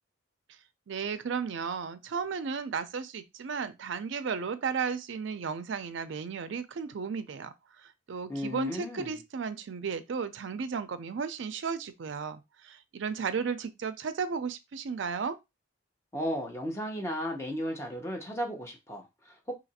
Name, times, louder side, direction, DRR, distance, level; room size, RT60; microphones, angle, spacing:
voice 1, 0.9-7.5 7.8-15.4, right 5 dB, 60° right, 0.4 m, -34 dB
voice 2, 8.3-9.2 16.1-19.5, equal, 15° left, 0.7 m, -35 dB
2.9 x 2.4 x 4.0 m
head